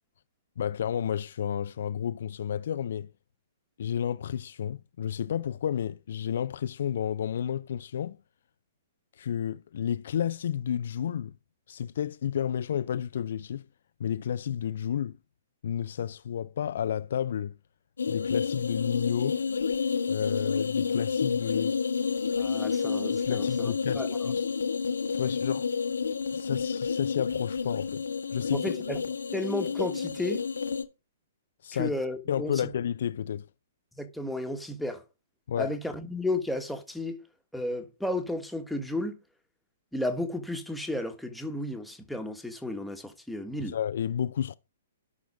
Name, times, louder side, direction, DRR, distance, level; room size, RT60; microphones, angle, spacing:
voice 1, 0.6-3.1 3.8-8.2 9.2-11.3 11.7-13.6 14.0-15.2 15.6-17.5 18.1-19.4 20.1-21.8 23.3-24.5 25.1-25.7 26.3-28.1 28.3-28.6 31.6-31.9 32.3-33.5 35.5-35.7 43.7-44.5, left 9 dB, 50° left, 0.4 m, -31 dB
sound 1, 18.0-30.8, left 5 dB, 65° left, 1.1 m, -30 dB
voice 2, 22.4-24.3 28.5-29.0 29.3-30.4 31.7-32.5 34.0-35.0 35.6-37.2 37.5-39.2 39.9-43.8, left 1 dB, ahead, 1.4 m, -33 dB
12.0 x 6.2 x 4.9 m
figure-of-eight pair, 120°, 0 cm